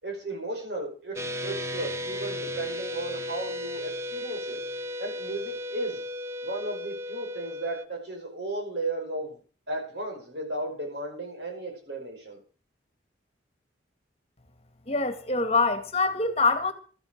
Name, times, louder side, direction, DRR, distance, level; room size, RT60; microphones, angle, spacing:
voice 1, 0.0-4.6 5.0-6.0 6.4-9.4 9.7-12.4, right 2 dB, 65° right, 5.4 m, -35 dB
sound 1, 1.2-7.9, left 1 dB, 15° right, 0.7 m, -35 dB
voice 2, 14.9-16.7, left 3 dB, 35° left, 1.7 m, -24 dB
13.0 x 9.1 x 6.5 m
head